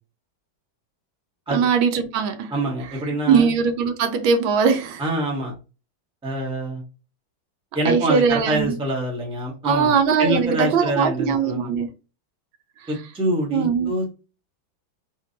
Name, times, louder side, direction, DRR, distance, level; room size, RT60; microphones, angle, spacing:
voice 1, 1.5-2.5 2.9-5.0 7.8-8.8 9.6-11.9 13.5-13.9, right 6 dB, 80° right, 1.5 m, -20 dB
voice 2, 2.5-3.5 5.0-5.5 6.2-6.8 7.7-11.7 12.9-14.2, right 1 dB, 5° right, 0.8 m, -25 dB
3.6 x 3.1 x 2.7 m
omnidirectional pair, 2.1 m